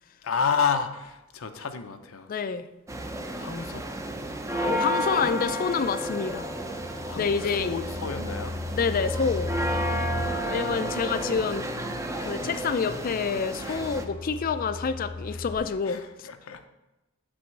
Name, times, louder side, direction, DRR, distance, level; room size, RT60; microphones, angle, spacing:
voice 1, 0.2-2.3 3.4-3.9 7.0-8.6 10.3-11.2 13.7-13.9 15.3-15.4 15.9-16.7, left 6 dB, 80° left, 7 dB, 0.7 m, -31 dB
voice 2, 2.3-2.7 4.6-6.5 7.1-7.7 8.7-9.5 10.5-11.7 12.2-16.3, left 5 dB, 45° left, 11 dB, 0.4 m, -28 dB
sound 1, 2.9-14.1, right 1 dB, 15° right, 0.5 m, -32 dB
sound 2, 6.2-15.6, left 2 dB, 40° right, 1.4 m, -37 dB
7.8 x 3.5 x 6.5 m, 0.99 s
head